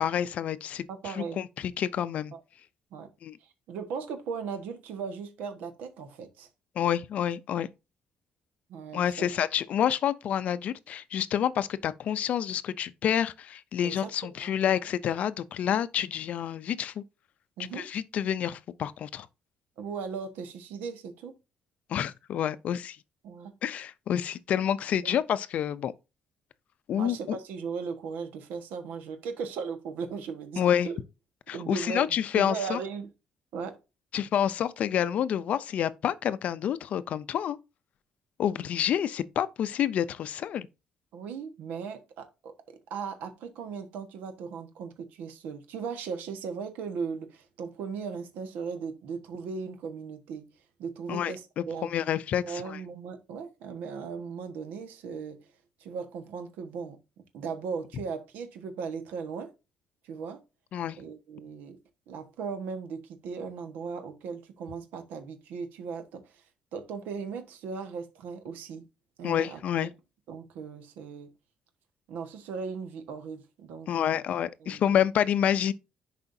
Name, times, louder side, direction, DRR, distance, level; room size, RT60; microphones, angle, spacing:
voice 1, 0.0-0.9 1.1-2.3 3.2-3.4 6.8-7.7 8.9-17.0 17.7-19.3 21.9-23.0 23.6-25.9 26.9-27.4 30.6-30.9 31.5-32.8 34.1-37.6 38.4-40.7 51.1-51.3 51.8-52.8 60.7-61.0 69.2-69.9 73.9-75.7, left 9 dB, 50° left, 0.4 m, -28 dB
voice 2, 0.9-1.4 2.3-2.4 2.9-3.1 3.4-6.5 8.7-9.3 13.8-14.5 17.6-17.9 19.8-21.3 23.2-23.5 25.0-25.2 26.9-31.0 31.5-33.1 33.5-33.8 41.1-50.5 50.8-51.9 52.4-55.4 55.8-57.0 57.3-59.5 60.0-60.4 61.0-61.8 62.1-66.4 66.7-68.8 69.2-69.9 70.3-71.3 72.1-74.0 74.6-74.8, right 5 dB, 90° right, 1.3 m, -37 dB
10.5 x 4.9 x 2.7 m
cardioid pair, 160°, 3 cm